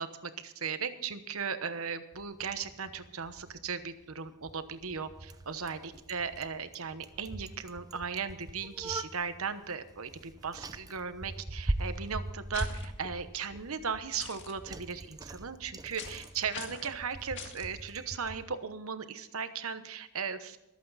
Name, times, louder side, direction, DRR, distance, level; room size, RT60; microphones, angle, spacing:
voice 1, 0.0-20.6, right 6 dB, 65° right, 11 dB, 1.1 m, -37 dB
Bicycle, 2.1-18.4, right 1 dB, 15° right, 0.6 m, -42 dB
sound 1, 12.5-12.9 14.2-14.5 16.0-16.3 16.5-16.9 17.4-17.7, left 6 dB, 55° left, 1.8 m, -42 dB
24.5 x 8.5 x 4.1 m, 0.95 s
head